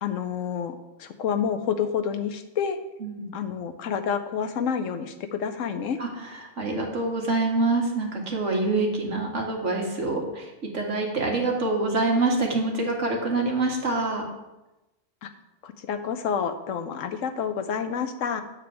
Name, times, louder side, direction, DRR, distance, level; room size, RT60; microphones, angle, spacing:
voice 1, 0.0-2.8 3.3-6.0 15.2-15.3 15.6-18.4, left 7 dB, 90° left, 9 dB, 1.1 m, -29 dB
voice 2, 6.6-14.2, right 2 dB, 70° right, 0 dB, 1.8 m, -25 dB
9.0 x 4.5 x 6.9 m, 1.0 s
omnidirectional pair, 1.3 m